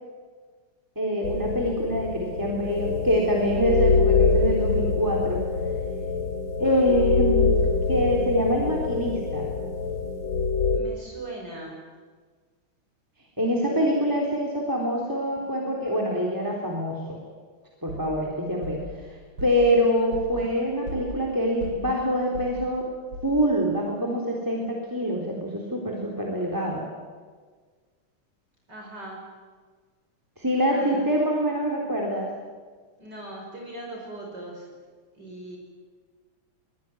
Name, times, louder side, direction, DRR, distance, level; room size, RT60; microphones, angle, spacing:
voice 1, 1.0-5.4 6.6-7.5 7.9-9.5 13.4-17.2 17.8-18.8 19.1-22.9 23.2-26.8 30.4-32.3, equal, 10° right, -2 dB, 3.7 m, -25 dB
sound 1, 1.2-10.8, left 4 dB, 85° left, 3.4 m, -25 dB
voice 2, 10.7-11.8 13.7-14.2 20.4-20.5 28.7-29.2 30.7-31.0 33.0-34.7 35.1-35.6, right 1 dB, 50° right, -1 dB, 6.0 m, -40 dB
sound 2, 17.9-23.7, left 2 dB, 80° right, 7.2 m, -40 dB
24.0 x 21.5 x 9.3 m, 1.5 s
omnidirectional pair, 2.3 m